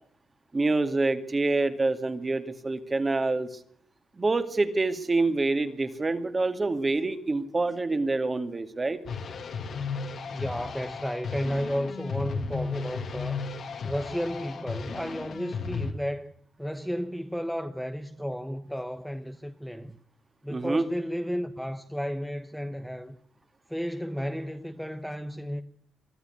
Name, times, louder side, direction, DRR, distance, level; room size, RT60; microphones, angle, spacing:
voice 1, 0.5-3.6 4.2-9.0 20.5-20.9, right 3 dB, 25° right, 2.2 m, -26 dB
sound 1, 9.0-15.9, left 5 dB, 55° left, 2.6 m, -35 dB
voice 2, 10.3-13.4 13.8-16.3 16.6-20.0 20.4-23.2 23.7-25.6, equal, ahead, 1.2 m, -33 dB
23.0 x 13.0 x 9.7 m
cardioid pair, 90°, 0 cm